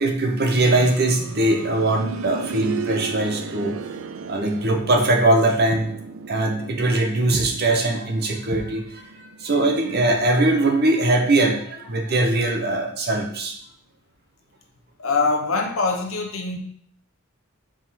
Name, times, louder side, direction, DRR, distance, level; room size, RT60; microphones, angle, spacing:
voice 1, 0.0-3.8 4.3-5.9 6.3-13.6, right 2 dB, 50° right, 3 dB, 1.0 m, -21 dB
sound 1, 0.5-11.3 12.7-12.8, right 5 dB, 70° right, 0.4 m, -36 dB
voice 2, 15.0-16.6, left 3 dB, 80° left, 2 dB, 1.1 m, -23 dB
4.8 x 3.8 x 5.7 m, 0.63 s
head